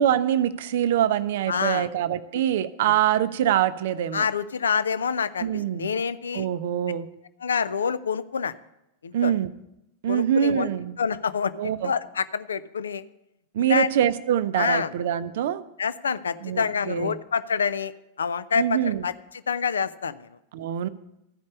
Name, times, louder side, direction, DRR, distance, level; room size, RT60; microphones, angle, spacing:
voice 1, 0.0-4.3 5.4-5.9 6.3-7.1 9.1-9.5 10.0-10.9 11.6-11.9 13.5-15.6 16.4-17.2 18.6-19.1 20.5-20.9, right 10 dB, 55° right, 14 dB, 0.5 m, -24 dB
voice 2, 1.5-1.9 4.1-6.5 7.4-8.5 9.0-9.3 10.1-10.7 11.0-13.0 13.6-13.9 14.5-14.9 15.8-17.9 18.2-19.1 19.5-20.3, left 6 dB, 70° left, 15 dB, 0.4 m, -27 dB
13.5 x 5.3 x 8.4 m, 0.88 s
figure-of-eight pair, 90°, 0 cm